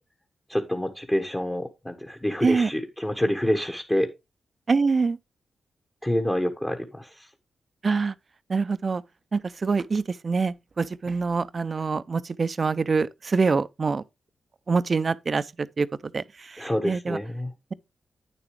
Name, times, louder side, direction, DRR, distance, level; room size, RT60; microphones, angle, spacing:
voice 1, 0.5-4.1 6.0-7.1 16.6-17.5, left 1 dB, 15° left, 1.3 m, -27 dB
voice 2, 4.7-5.2 7.8-8.1 8.5-9.0 9.3-14.0 14.7-15.9 16.1-17.2, right 4 dB, 50° right, 0.5 m, -25 dB
9.1 x 6.9 x 3.2 m
supercardioid pair, 45°, 0 cm